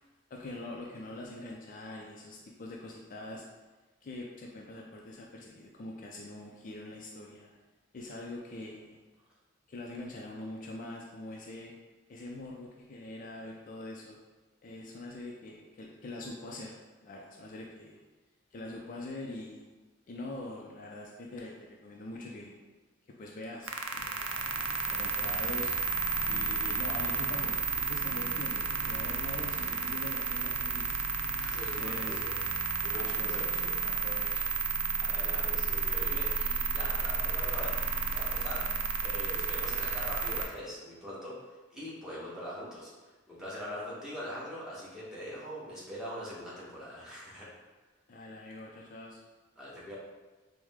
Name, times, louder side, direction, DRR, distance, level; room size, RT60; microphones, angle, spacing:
voice 1, 0.3-3.4 4.0-7.5 7.9-9.0 9.7-11.7 12.1-14.2 14.6-16.8 17.0-18.0 18.5-19.6 20.1-22.6 23.2-25.7 26.3-30.9 31.5-32.2 32.9-34.5 48.1-49.2, left 2 dB, 45° left, -1 dB, 0.4 m, -44 dB
sound 1, 23.6-40.5, right 4 dB, 85° right, 0.4 m, -32 dB
voice 2, 31.4-33.8 35.0-37.8 38.1-42.9 43.3-47.5 49.6-50.0, equal, 5° right, -8 dB, 1.1 m, -42 dB
4.7 x 2.1 x 3.5 m, 1.2 s
head